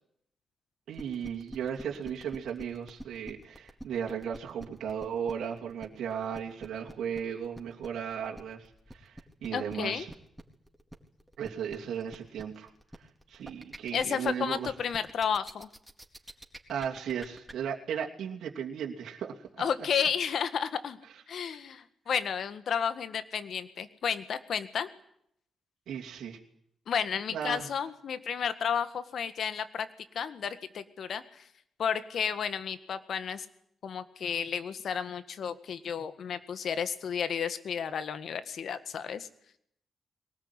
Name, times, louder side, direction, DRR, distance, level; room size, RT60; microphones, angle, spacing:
sound 1, 0.9-17.5, right 1 dB, 5° right, 4.2 m, -46 dB
voice 1, 0.9-10.1 11.4-12.7 13.3-14.7 16.7-19.6 25.9-26.4 27.3-27.7, right 8 dB, 75° right, 0 dB, 2.8 m, -36 dB
voice 2, 9.5-10.1 13.9-15.7 19.6-21.0 21.3-24.9 26.9-29.9 30.1-31.5 31.8-33.5 33.8-39.3, left 7 dB, 70° left, 12 dB, 1.8 m, -32 dB
22.5 x 19.0 x 9.9 m, 0.73 s
hypercardioid pair, 40°, 0 cm